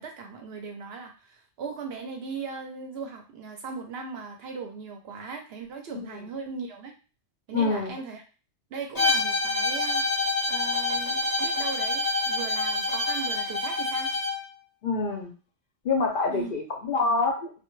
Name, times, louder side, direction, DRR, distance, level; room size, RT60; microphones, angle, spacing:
voice 1, 0.0-6.9 7.5-8.2 8.7-10.0 10.5-14.1 16.3-16.5, right 5 dB, 65° right, 4 dB, 0.7 m, -38 dB
voice 2, 7.5-7.9 14.8-15.3 15.8-17.5, left 3 dB, 55° left, 0 dB, 0.6 m, -26 dB
Bowed string instrument, 8.9-14.4, left 2 dB, 20° left, 0.7 m, -27 dB
2.2 x 2.2 x 3.0 m, 0.35 s
omnidirectional pair, 1.2 m